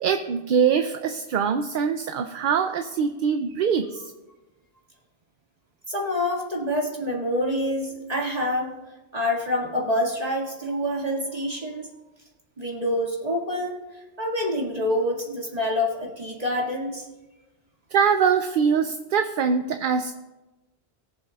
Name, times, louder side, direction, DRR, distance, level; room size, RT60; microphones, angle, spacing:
voice 1, 0.0-4.0 17.9-20.1, right 6 dB, 60° right, 7 dB, 0.6 m, -23 dB
voice 2, 5.9-8.8 9.1-11.9 12.6-13.8 14.2-17.1, left 1 dB, 35° right, -2 dB, 2.1 m, -26 dB
21.5 x 7.4 x 2.3 m, 1.1 s
omnidirectional pair, 1.1 m